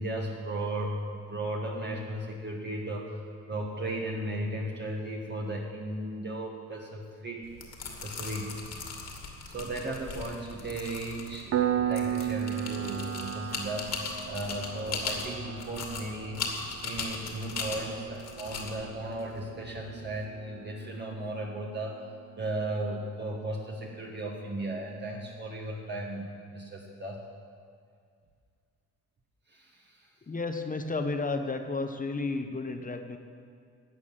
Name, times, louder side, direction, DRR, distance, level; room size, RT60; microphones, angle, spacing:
voice 1, 0.0-3.2 3.5-7.5 8.0-8.5 9.5-22.0 22.4-27.2 29.5-30.1, right 1 dB, 35° right, -1 dB, 1.7 m, -36 dB
sound 1, 7.4-20.2, left 4 dB, 60° left, 2.3 m, -39 dB
Piano, 11.5-21.9, right 11 dB, 55° right, 0.8 m, -36 dB
voice 2, 30.2-33.2, left 3 dB, 25° left, 7 dB, 1.1 m, -32 dB
13.0 x 8.4 x 7.5 m, 2.2 s
cardioid pair, 90°, 30 cm